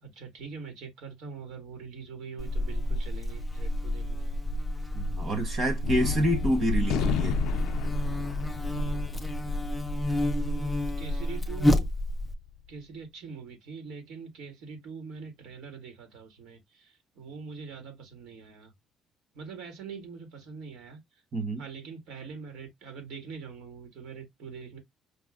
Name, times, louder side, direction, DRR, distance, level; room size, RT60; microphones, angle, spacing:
voice 1, 0.0-4.3 10.2-11.9 12.7-18.7 19.3-21.0 21.6-24.8, right 5 dB, 70° right, 1.7 m, -43 dB
Buzz, 2.4-12.3, left 1 dB, 5° left, 0.4 m, -29 dB
voice 2, 4.9-7.4 21.3-21.6, right 1 dB, 30° right, 1.3 m, -27 dB
Gunshot gunfire, 5.8-12.4, left 9 dB, 75° left, 0.4 m, -34 dB
5.1 x 2.0 x 3.6 m
cardioid pair, 180°, 0 cm